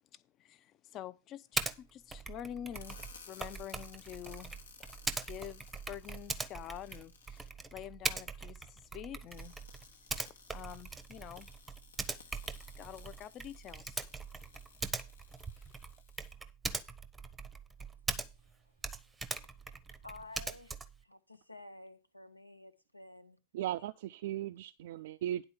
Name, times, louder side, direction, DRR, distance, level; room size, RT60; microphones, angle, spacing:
voice 1, 0.1-3.0 3.3-4.6 5.1-9.6 10.2-11.5 12.8-14.1, left 11 dB, 35° left, 0.6 m, -47 dB
Typing, 1.6-1.8 2.1-18.5 18.8-21.0, right 4 dB, 10° right, 0.7 m, -41 dB
sound 1, 2.7-7.5 9.2-16.3, left 5 dB, 75° left, 1.1 m, -57 dB
voice 2, 18.3-19.5 20.0-20.8 21.0-23.4, left 2 dB, 90° left, 0.9 m, -53 dB
voice 3, 23.5-25.4, right 12 dB, 55° right, 0.4 m, -37 dB
10.0 x 4.3 x 7.2 m
figure-of-eight pair, 90°, 0 cm